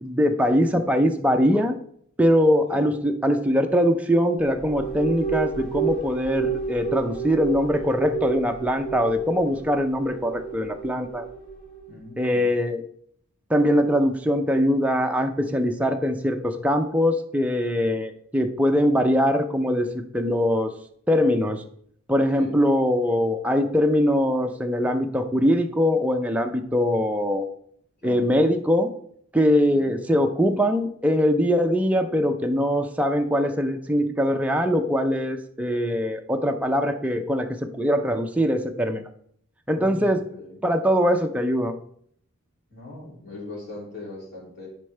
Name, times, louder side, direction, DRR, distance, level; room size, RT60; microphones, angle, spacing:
voice 1, 0.0-1.8 2.2-11.3 12.2-12.8 13.5-19.9 20.1-20.7 21.1-21.6 22.1-27.5 28.0-28.9 29.3-39.0 39.7-40.2 40.6-41.7, equal, 5° right, 4 dB, 0.5 m, -22 dB
sound 1, 4.4-11.9, right 6 dB, 30° left, 2.8 m, -31 dB
voice 2, 11.9-12.5 22.4-22.7 28.0-28.3 29.7-30.0 39.7-40.6 42.7-44.7, left 2 dB, 50° left, -4 dB, 2.8 m, -40 dB
9.9 x 4.4 x 3.3 m, 0.64 s
head